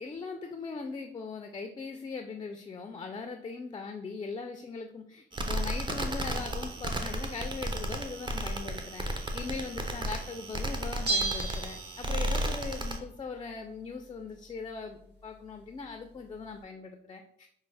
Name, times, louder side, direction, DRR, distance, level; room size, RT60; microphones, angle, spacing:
voice 1, 0.0-17.5, left 4 dB, 25° left, 5 dB, 0.3 m, -40 dB
sound 1, 5.3-13.0, right 1 dB, 25° right, 0.6 m, -33 dB
Bell, 11.1-12.5 12.7-12.8, right 3 dB, 60° right, 1.3 m, -32 dB
5.1 x 2.0 x 3.3 m, 0.70 s
cardioid pair, 90°, 20 cm